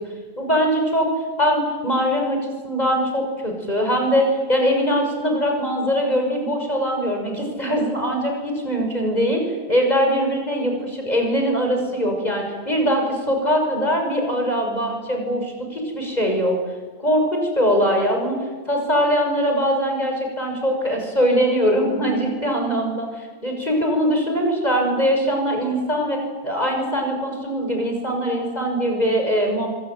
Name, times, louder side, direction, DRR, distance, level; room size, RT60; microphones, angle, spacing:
voice 1, 0.4-1.1 1.4-2.4 2.6-16.6 17.0-18.4 18.7-23.1 23.4-29.7, equal, 25° left, 2 dB, 6.5 m, -22 dB
25.5 x 25.0 x 9.0 m, 1.5 s
omnidirectional pair, 1.5 m